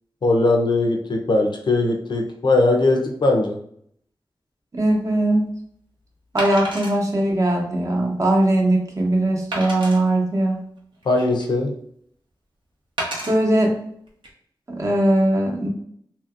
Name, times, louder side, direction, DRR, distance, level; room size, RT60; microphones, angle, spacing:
voice 1, 0.2-3.6 11.1-11.7, left 2 dB, 60° left, 2 dB, 0.5 m, -19 dB
voice 2, 4.7-5.5 6.3-10.6 13.3-13.7 14.7-15.7, right 1 dB, 40° right, -1 dB, 0.8 m, -20 dB
Wood, 4.8-4.9 6.4-7.0 7.6-7.7 8.2-8.3 9.5-10.0 10.8-11.6 13.0-13.3 14.1-14.3, right 2 dB, 70° right, 0.8 m, -30 dB
2.8 x 2.6 x 2.4 m, 0.67 s
wide cardioid pair, 65°, 9 cm